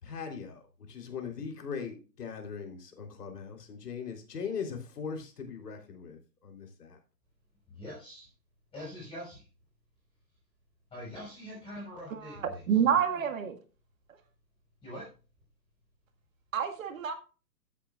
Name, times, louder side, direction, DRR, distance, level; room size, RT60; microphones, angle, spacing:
voice 1, 0.0-7.0, left 6 dB, 70° left, 3.6 m, -40 dB
voice 2, 7.7-8.3 8.7-9.4 10.9-12.6 14.8-15.1, left 1 dB, 10° left, 5.9 m, -43 dB
voice 3, 12.1-13.6 16.5-17.1, right 8 dB, 50° right, 1.9 m, -28 dB
15.0 x 8.3 x 2.4 m
hypercardioid pair, 145°, 49 cm